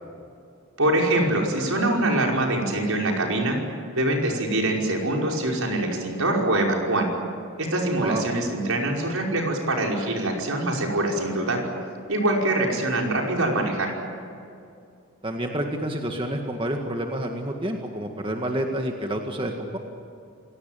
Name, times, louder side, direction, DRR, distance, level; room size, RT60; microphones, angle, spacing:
voice 1, 0.8-3.6 4.0-7.1 7.6-11.6 12.1-13.9, right 1 dB, 80° right, 0 dB, 5.4 m, -24 dB
voice 2, 15.2-19.8, right 1 dB, 25° right, 3 dB, 1.9 m, -29 dB
28.0 x 18.0 x 9.2 m, 2.5 s
head